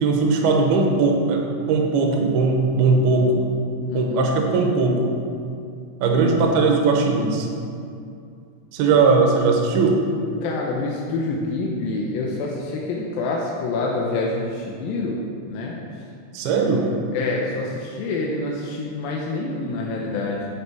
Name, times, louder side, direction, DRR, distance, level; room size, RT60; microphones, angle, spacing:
voice 1, 0.0-1.4 1.7-3.5 3.9-5.1 6.0-7.5 8.7-10.0 16.3-16.8, right 4 dB, 75° right, 1 dB, 2.8 m, -19 dB
voice 2, 3.9-4.3 8.9-9.0 10.4-15.2 15.5-16.0 16.7-16.8 17.1-20.5, left 3 dB, 75° left, -2 dB, 2.4 m, -27 dB
9.7 x 7.7 x 4.8 m, 2.4 s
omnidirectional pair, 4.7 m